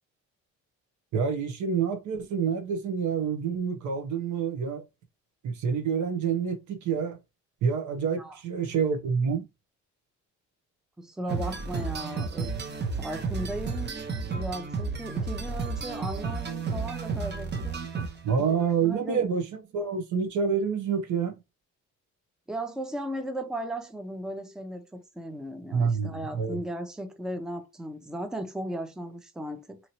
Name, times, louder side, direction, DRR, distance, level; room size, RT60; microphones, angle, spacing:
voice 1, 1.1-4.9 5.4-7.2 7.6-9.4 18.2-21.4 25.7-26.6, right 6 dB, 75° right, 0.9 m, -27 dB
voice 2, 11.0-12.5 13.0-14.0 14.3-17.9 18.4-19.2 22.5-29.8, right 1 dB, ahead, 0.6 m, -36 dB
sound 1, 11.3-18.5, right 4 dB, 35° right, 0.7 m, -32 dB
2.9 x 2.8 x 2.7 m
cardioid pair, 90°, 30 cm